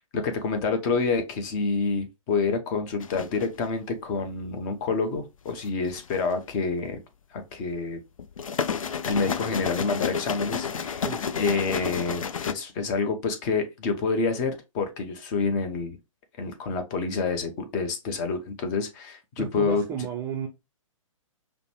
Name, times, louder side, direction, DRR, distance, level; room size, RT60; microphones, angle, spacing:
voice 1, 0.0-7.0 7.3-8.0 9.1-11.1 11.3-16.0 16.4-19.8, left 4 dB, 30° left, 0.8 m, -28 dB
sound 1, 3.0-3.6 5.6-6.3 8.2-12.5, left 6 dB, 75° left, 0.4 m, -31 dB
voice 2, 19.4-20.5, right 7 dB, 15° right, 0.4 m, -32 dB
5.1 x 2.1 x 3.0 m
figure-of-eight pair, 120°, 17 cm